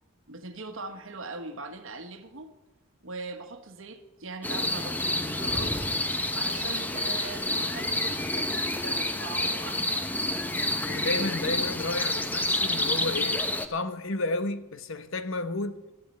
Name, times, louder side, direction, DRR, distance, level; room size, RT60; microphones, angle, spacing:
voice 1, 0.3-2.5 3.0-5.8 6.3-10.0, right 3 dB, 65° right, 1.4 m, -41 dB
sound 1, 4.4-13.7, left 1 dB, 10° left, 0.8 m, -29 dB
voice 2, 10.9-15.8, left 2 dB, 65° left, 1.0 m, -32 dB
13.5 x 8.5 x 9.0 m
head